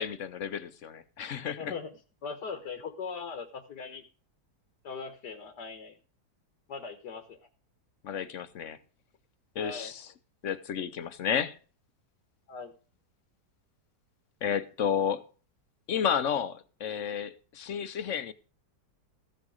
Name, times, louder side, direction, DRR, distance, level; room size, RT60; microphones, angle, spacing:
voice 1, 0.0-1.7 8.0-8.8 9.5-10.1 10.4-11.6 14.4-15.2 15.9-18.3, left 8 dB, 55° left, 1.0 m, -31 dB
voice 2, 1.6-1.9 2.2-4.0 4.8-6.0 6.7-7.4 9.6-9.9 12.5-12.7, left 5 dB, 80° left, 1.9 m, -39 dB
15.0 x 6.7 x 6.3 m
omnidirectional pair, 1.8 m